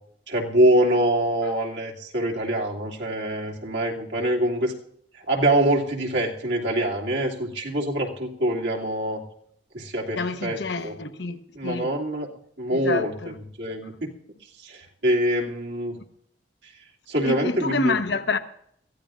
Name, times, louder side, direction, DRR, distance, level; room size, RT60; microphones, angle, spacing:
voice 1, 0.3-4.7 5.3-9.2 9.7-10.9 11.5-12.3 12.6-14.1 14.6-16.0 17.1-18.0, right 1 dB, 80° right, 2.7 m, -24 dB
voice 2, 10.2-11.9 12.7-13.3 17.2-18.4, left 3 dB, 75° left, 1.1 m, -27 dB
23.5 x 15.0 x 2.5 m
head